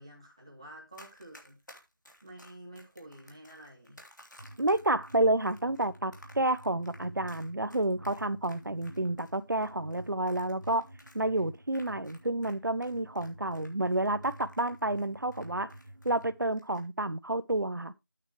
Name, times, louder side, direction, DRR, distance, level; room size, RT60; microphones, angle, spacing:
voice 1, 0.0-1.6 2.2-4.0, right 1 dB, 15° right, 2.0 m, -50 dB
Run, 0.9-12.5 12.8-16.2 16.5-16.8, left 1 dB, 65° left, 3.1 m, -56 dB
sound 1, 4.4-16.5, right 1 dB, 40° right, 1.9 m, -51 dB
voice 2, 4.6-10.9 11.1-15.7 16.0-17.9, right 2 dB, 70° right, 0.9 m, -30 dB
9.9 x 8.9 x 3.1 m
figure-of-eight pair, 180°, 11 cm